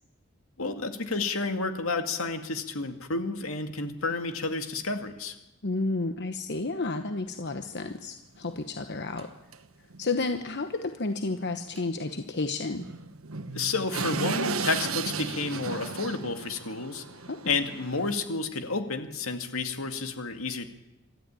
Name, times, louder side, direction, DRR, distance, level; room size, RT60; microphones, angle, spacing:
voice 1, 0.6-5.4 13.5-17.0 17.5-20.7, left 3 dB, 85° left, 7 dB, 2.2 m, -30 dB
voice 2, 5.6-9.3 10.0-12.9 17.3-17.4, left 3 dB, 55° left, 7 dB, 1.1 m, -31 dB
sound 1, 7.8-7.9 8.4-8.5 9.2-9.3 9.5-9.6 9.9-10.1 11.8-11.9 12.1-12.2 12.8-18.1, right 5 dB, 85° right, 1.2 m, -35 dB
26.0 x 13.5 x 8.9 m, 0.97 s
head